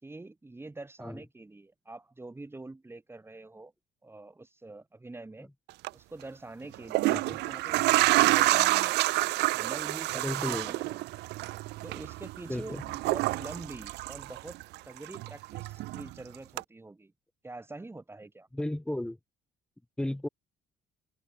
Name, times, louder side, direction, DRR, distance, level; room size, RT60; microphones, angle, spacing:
voice 1, 0.0-3.7 4.0-5.5 5.9-11.0 11.8-14.6 14.9-17.1 17.4-18.5, right 2 dB, 15° right, 4.2 m, -45 dB
sound 1, 5.7-5.9 6.7-14.8 15.1-16.1 16.6-16.7, right 20 dB, 85° right, 1.0 m, -28 dB
voice 2, 10.1-10.7 12.5-12.8 18.5-19.2 20.0-20.3, left 1 dB, 5° left, 0.9 m, -34 dB
open air
cardioid pair, 110°, 17 cm